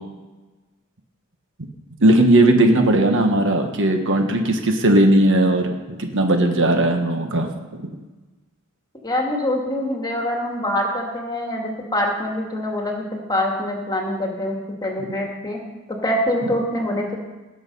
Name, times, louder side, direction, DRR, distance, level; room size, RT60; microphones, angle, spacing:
voice 1, 2.0-7.9, right 1 dB, 60° right, 5 dB, 1.3 m, -17 dB
voice 2, 9.0-15.6 15.9-17.2, left 1 dB, 20° left, 0 dB, 2.0 m, -24 dB
18.5 x 6.4 x 5.4 m, 1.2 s
head